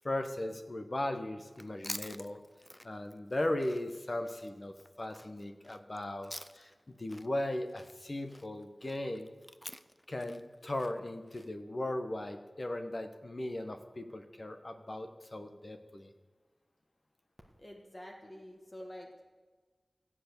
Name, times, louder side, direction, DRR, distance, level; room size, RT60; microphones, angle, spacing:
voice 1, 0.0-2.4 2.8-9.3 10.1-16.1, left 1 dB, 45° left, 6 dB, 1.2 m, -37 dB
Chewing mastication, 1.5-6.8 7.1-11.5, equal, 10° left, 0.4 m, -48 dB
voice 2, 17.6-19.2, equal, 25° left, 0 dB, 1.5 m, -48 dB
14.0 x 8.2 x 6.9 m, 1.3 s
wide cardioid pair, 70°, 0 cm